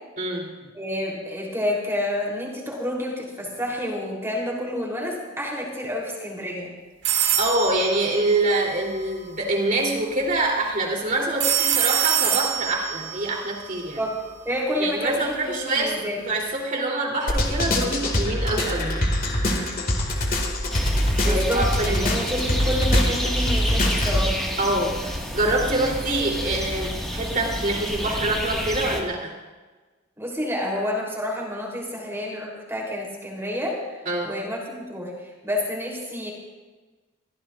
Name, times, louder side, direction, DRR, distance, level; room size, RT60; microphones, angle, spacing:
voice 1, 0.2-0.5 7.3-14.0 14.8-19.0 21.2-22.0 24.6-29.3 34.0-34.3, right 2 dB, 40° right, -1 dB, 3.3 m, -25 dB
voice 2, 0.7-6.7 14.0-14.2 14.4-16.2 21.2-24.5 30.2-33.8 34.2-36.3, left 1 dB, 15° right, -2 dB, 3.4 m, -29 dB
sound 1, 7.0-9.1 11.4-14.4, right 9 dB, 60° right, 2.1 m, -25 dB
sound 2, 17.3-24.2, left 1 dB, 45° left, 2.2 m, -23 dB
sound 3, 20.7-29.0, equal, ahead, 1.7 m, -30 dB
23.5 x 15.0 x 2.5 m, 1.3 s
head